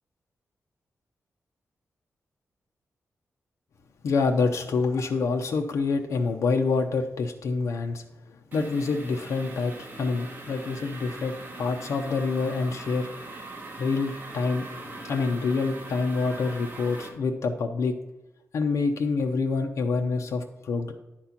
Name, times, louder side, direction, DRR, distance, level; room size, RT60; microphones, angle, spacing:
voice 1, 4.0-13.1 13.8-17.9 18.5-20.9, left 4 dB, 90° left, 3 dB, 0.8 m, -27 dB
sound 1, 8.5-17.1, right 2 dB, 35° right, 1.8 m, -41 dB
10.5 x 4.3 x 5.8 m, 0.96 s
wide cardioid pair, 160°, 5 cm